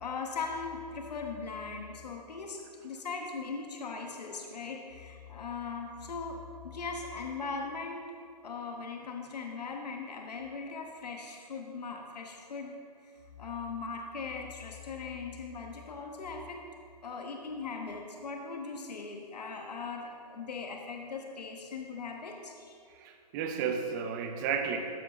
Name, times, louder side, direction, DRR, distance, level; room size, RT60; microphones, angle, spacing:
voice 1, 0.0-6.4 6.6-8.0 8.4-12.7 13.0-13.1 13.4-16.6 17.0-22.8, left 4 dB, 75° left, 2 dB, 1.1 m, -39 dB
voice 2, 22.9-24.8, right 7 dB, 30° right, 6 dB, 0.7 m, -32 dB
13.0 x 4.6 x 3.9 m, 2.2 s
hypercardioid pair, 140°, 21 cm